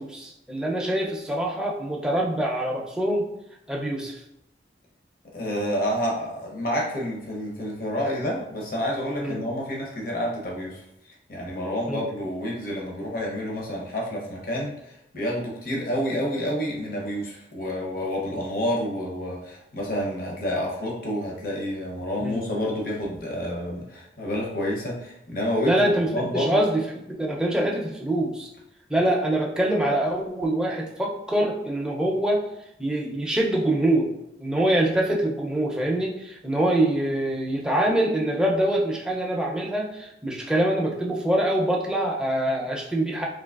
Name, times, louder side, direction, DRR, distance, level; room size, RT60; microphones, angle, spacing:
voice 1, 0.0-3.3 3.7-4.2 9.2-9.4 11.9-12.0 22.2-22.4 25.6-28.5 28.9-32.4 32.8-34.1 34.4-43.3, right 1 dB, 5° right, -1 dB, 0.5 m, -24 dB
voice 2, 5.3-10.8 11.3-26.6, equal, 50° left, -2 dB, 0.8 m, -29 dB
3.8 x 2.8 x 2.4 m, 0.80 s
head